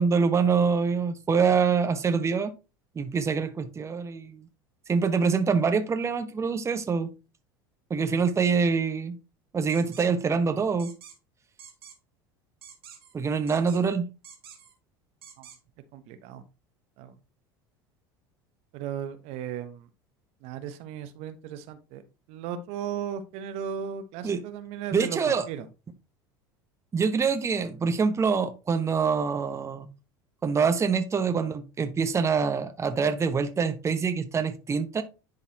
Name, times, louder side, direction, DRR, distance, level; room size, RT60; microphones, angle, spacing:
voice 1, 0.0-2.5 3.0-4.5 4.9-7.1 7.9-9.2 9.5-10.9 13.1-14.0 24.2-24.4 24.9-25.5 26.9-29.9 30.4-35.0, right 5 dB, 25° right, 0.8 m, -25 dB
sound 1, 9.7-10.1 10.8-11.2 11.6-12.0 12.6-13.1 13.5-13.9 14.2-14.7 15.2-15.6, right 8 dB, 90° right, 1.8 m, -48 dB
voice 2, 15.9-16.4 17.0-17.1 18.7-19.9 20.4-22.0 22.3-25.6, right 8 dB, 60° right, 1.0 m, -36 dB
10.5 x 3.9 x 2.8 m
hypercardioid pair, 80°, 12 cm